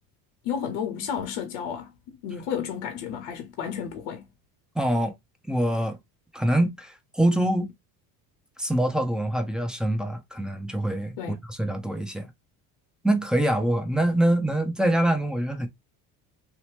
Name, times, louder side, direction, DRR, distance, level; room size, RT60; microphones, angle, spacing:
voice 1, 0.4-4.3 11.2-11.4, left 8 dB, 75° left, 0.7 m, -32 dB
voice 2, 4.8-5.1 5.5-6.0 6.3-7.7 8.6-11.2 11.5-12.3 13.0-15.7, right 1 dB, ahead, 0.6 m, -24 dB
2.8 x 2.1 x 3.1 m
supercardioid pair, 75°, 49 cm